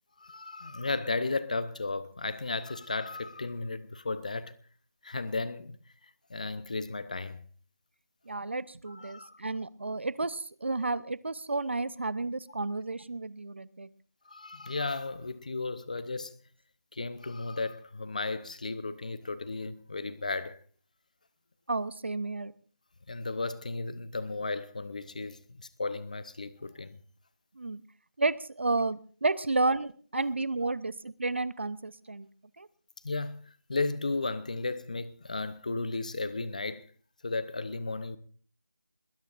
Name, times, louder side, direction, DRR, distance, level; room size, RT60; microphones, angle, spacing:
voice 1, 0.2-4.5 5.0-5.8 6.3-7.4 8.9-9.4 14.3-16.4 16.9-20.6 23.1-27.0 33.0-33.4 33.7-36.9 37.2-38.2, left 3 dB, 25° left, 0.8 m, -34 dB
voice 2, 8.3-13.9 21.7-22.5 27.6-27.8 28.2-32.3 32.6-32.7, right 3 dB, 45° right, 0.7 m, -31 dB
27.5 x 20.5 x 2.5 m
figure-of-eight pair, 175°, 9 cm